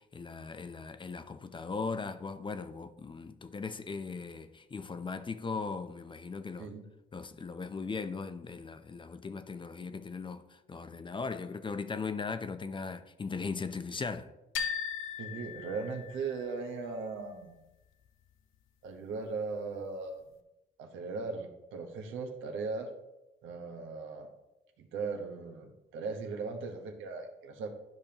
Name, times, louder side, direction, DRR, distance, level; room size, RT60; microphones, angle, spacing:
voice 1, 0.0-6.7 7.1-14.3, left 4 dB, 25° left, 0.5 m, -38 dB
sound 1, 14.6-16.5, left 7 dB, 85° left, 0.6 m, -37 dB
voice 2, 15.2-17.6 18.8-20.2 20.8-22.9 23.4-24.3 24.8-27.7, right 4 dB, 85° right, 1.1 m, -38 dB
12.0 x 5.2 x 2.9 m
cardioid pair, 90°, 20 cm